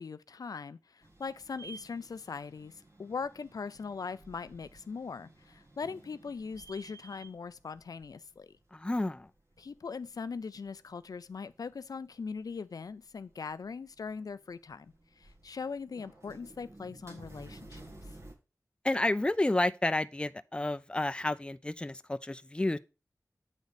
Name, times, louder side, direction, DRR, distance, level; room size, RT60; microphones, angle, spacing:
voice 1, 0.0-2.7 3.0-8.5 9.6-18.1, left 5 dB, 85° left, 0.4 m, -40 dB
sound 1, 1.0-18.3, right 2 dB, 50° right, 1.6 m, -55 dB
voice 2, 8.7-9.3 18.8-22.8, left 2 dB, 15° left, 0.4 m, -30 dB
8.1 x 4.0 x 4.9 m
wide cardioid pair, 60°, 6 cm